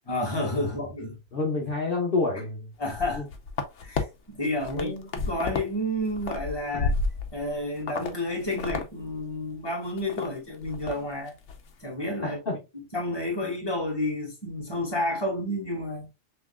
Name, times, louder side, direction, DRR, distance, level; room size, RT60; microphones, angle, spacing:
voice 1, 0.1-1.2 2.3-2.4 2.8-3.2 3.8-5.0 5.2-6.9 7.3-11.3 11.8-12.4 12.9-16.1, left 1 dB, 20° left, 1.5 m, -30 dB
voice 2, 1.3-2.7 3.1-3.3 4.7-5.1 6.7-6.8 12.2-12.6, left 3 dB, 55° left, 1.2 m, -29 dB
sound 1, 2.8-4.0 4.5-5.7 6.0-7.5 7.9-8.1 8.4-8.9 9.1-9.2 9.7-10.3 10.6-11.0 11.3-11.6, left 4 dB, 80° left, 1.1 m, -31 dB
6.0 x 3.0 x 2.3 m
omnidirectional pair, 1.2 m